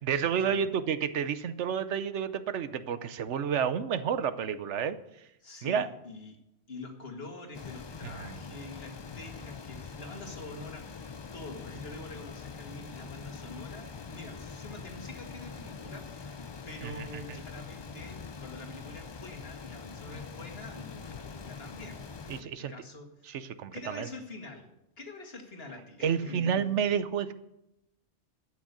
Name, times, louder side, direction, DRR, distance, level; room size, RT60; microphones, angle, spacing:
voice 1, 0.0-5.0 5.6-5.9 8.2-8.4 16.8-17.4 22.3-22.7 23.3-24.1 26.0-27.3, right 7 dB, 75° right, 13 dB, 1.1 m, -30 dB
voice 2, 5.4-6.4 6.7-16.4 16.7-22.0 22.4-23.3 23.7-24.7 25.0-26.7, left 3 dB, 55° left, 3 dB, 2.2 m, -45 dB
sound 1, 7.5-22.4, left 5 dB, 40° left, 0.3 m, -44 dB
12.0 x 6.3 x 8.2 m, 0.86 s
omnidirectional pair, 1.2 m